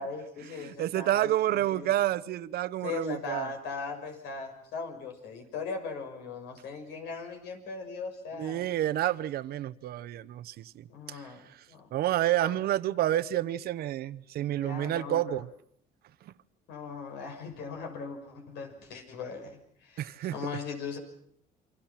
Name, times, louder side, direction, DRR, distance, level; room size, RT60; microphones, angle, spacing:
voice 1, 0.0-1.9 2.8-8.7 10.9-11.9 12.4-12.6 14.6-15.4 16.7-21.0, left 5 dB, 85° left, 6.4 m, -39 dB
voice 2, 0.6-3.5 8.4-11.2 11.9-15.5 20.0-20.3, right 13 dB, 65° right, 1.0 m, -29 dB
28.5 x 24.5 x 6.0 m
cardioid pair, 110°, 17 cm